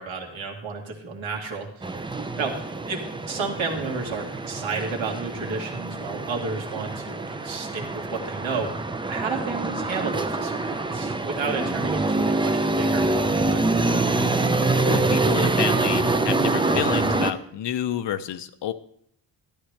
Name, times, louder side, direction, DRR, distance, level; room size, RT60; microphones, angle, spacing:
voice 1, 0.0-13.6, right 4 dB, 75° right, 1 dB, 2.2 m, -32 dB
sound 1, 1.8-17.3, right 2 dB, 10° right, 0.5 m, -25 dB
voice 2, 14.9-18.7, left 10 dB, 65° left, 11 dB, 0.7 m, -29 dB
12.0 x 11.5 x 3.3 m, 0.65 s
cardioid pair, 115°, 46 cm